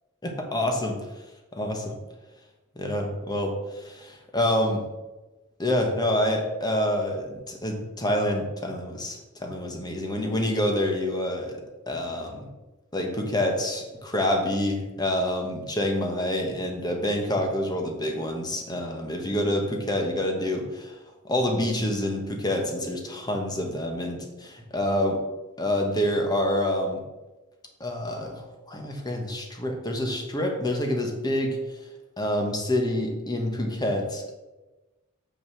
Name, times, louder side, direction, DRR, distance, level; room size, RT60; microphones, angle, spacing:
voice 1, 0.2-1.0 1.5-1.9 2.7-4.8 5.6-11.6 11.9-12.4 12.9-20.9 21.2-25.2 25.6-27.0 27.8-31.6 32.2-34.3, left 1 dB, 20° left, 2 dB, 1.4 m, -27 dB
6.6 x 6.3 x 6.2 m, 1.1 s
head